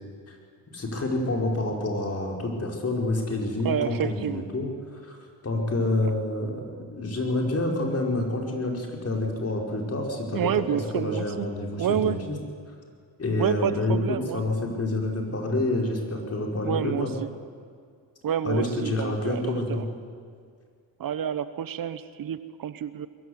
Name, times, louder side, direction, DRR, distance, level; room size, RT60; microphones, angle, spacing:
voice 1, 0.7-5.2 5.4-12.4 13.2-17.1 18.4-19.8, left 2 dB, 40° left, 1 dB, 5.3 m, -28 dB
voice 2, 3.6-4.4 10.3-11.5 11.8-12.2 13.4-14.4 16.6-17.1 18.2-19.8 21.0-23.1, right 9 dB, 60° right, 14 dB, 1.0 m, -28 dB
22.0 x 14.5 x 9.8 m, 2.2 s
cardioid pair, 75°, 38 cm